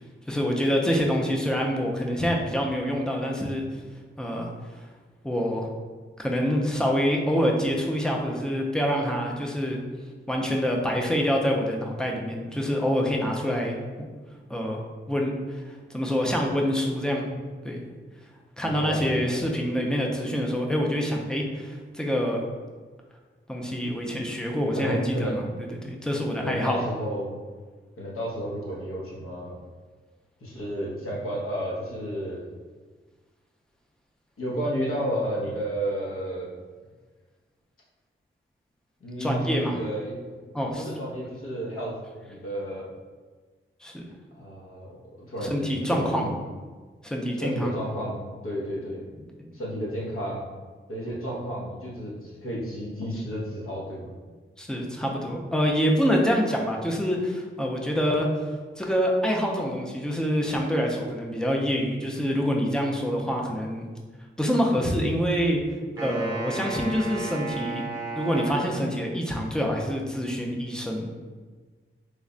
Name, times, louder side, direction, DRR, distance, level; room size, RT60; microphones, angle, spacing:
voice 1, 0.3-3.6 4.2-4.5 5.2-5.7 6.2-9.8 10.3-14.1 14.5-17.3 17.6-17.8 18.6-22.4 23.5-25.4 25.8-26.8 39.2-39.8 40.5-40.8 43.8-44.0 45.4-46.4 47.0-47.7 49.4-49.5 54.6-58.3 58.8-63.9 64.4-65.6 66.0-67.8 68.2-71.1, equal, 5° left, 0 dB, 0.4 m, -26 dB
voice 2, 18.6-19.4 24.7-25.4 26.4-27.4 28.0-29.6 30.4-32.5 34.4-36.5 39.0-40.1 40.8-42.0 42.3-42.9 44.3-44.9 45.3-46.3 47.4-49.0 49.5-50.5 50.9-54.1, equal, 85° left, -5 dB, 0.9 m, -32 dB
Wind instrument woodwind instrument, 66.0-69.4, right 3 dB, 20° right, 0.7 m, -34 dB
3.2 x 2.1 x 3.7 m, 1.5 s
wide cardioid pair, 170°, 21 cm